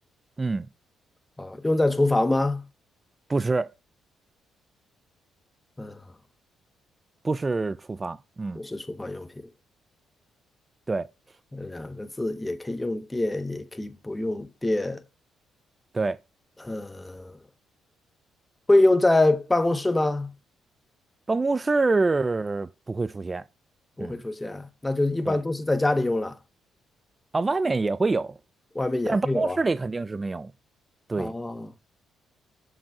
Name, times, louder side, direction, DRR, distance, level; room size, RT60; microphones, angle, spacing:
voice 1, 0.4-0.7 3.3-3.7 7.2-8.6 10.9-11.1 15.9-16.2 21.3-23.4 24.0-24.2 25.3-25.4 27.3-28.4 29.1-30.5 31.1-31.3, right 3 dB, 25° right, 0.4 m, -26 dB
voice 2, 1.4-2.6 5.8-6.0 8.6-9.5 11.5-15.0 16.6-17.3 18.7-20.3 24.0-26.3 28.7-29.6 31.2-31.7, left 2 dB, 15° left, 0.8 m, -25 dB
7.4 x 4.9 x 4.7 m
cardioid pair, 90°, 0 cm